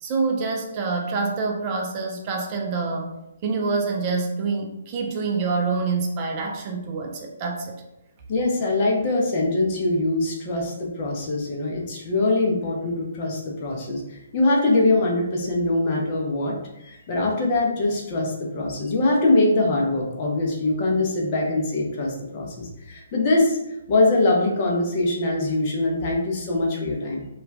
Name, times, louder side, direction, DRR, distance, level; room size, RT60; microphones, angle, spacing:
voice 1, 0.0-3.1 3.4-7.8, right 4 dB, 30° right, 1 dB, 0.4 m, -26 dB
voice 2, 8.3-23.6 23.9-27.3, left 2 dB, 35° left, -2 dB, 0.6 m, -23 dB
2.3 x 2.2 x 3.3 m, 0.90 s
figure-of-eight pair, 130°, 0 cm